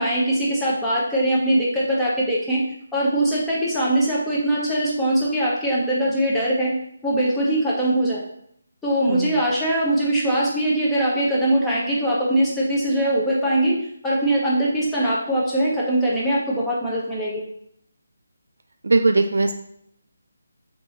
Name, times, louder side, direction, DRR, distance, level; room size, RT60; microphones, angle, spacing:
voice 1, 0.0-2.6 2.9-6.7 7.0-8.2 8.8-13.7 14.0-17.4, right 1 dB, 5° left, -7 dB, 0.9 m, -21 dB
voice 2, 9.1-9.4 18.8-19.5, right 3 dB, 65° right, 5 dB, 0.4 m, -19 dB
4.7 x 2.7 x 3.0 m, 0.70 s
figure-of-eight pair, 150°, 0 cm